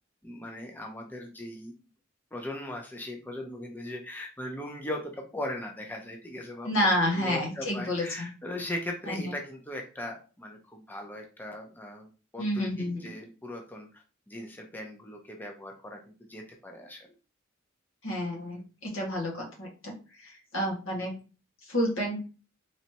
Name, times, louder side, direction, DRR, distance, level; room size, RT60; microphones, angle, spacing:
voice 1, 0.2-1.7 2.3-6.7 7.2-13.9 14.3-17.1, left 1 dB, 10° left, 2 dB, 0.6 m, -39 dB
voice 2, 6.6-8.3 9.1-9.3 12.4-13.1 18.0-19.9 20.2-21.2 21.7-22.2, equal, 85° left, -1 dB, 1.7 m, -29 dB
4.1 x 3.2 x 2.9 m, 0.35 s
head